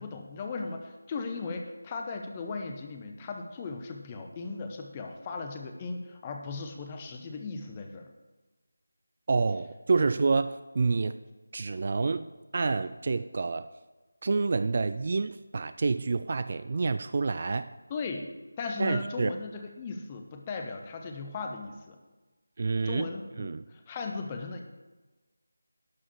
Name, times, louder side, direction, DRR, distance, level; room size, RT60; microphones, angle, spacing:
voice 1, 0.0-8.1 10.0-10.1 17.9-18.3 18.6-22.0 22.8-24.6, left 4 dB, 20° left, 4 dB, 0.9 m, -37 dB
voice 2, 9.3-11.2 11.5-12.3 12.5-13.7 14.2-17.7 18.8-19.3 22.6-23.1 23.4-23.6, right 4 dB, 40° right, 12 dB, 0.3 m, -28 dB
11.5 x 4.9 x 7.1 m, 1.2 s
figure-of-eight pair, 165°, 0 cm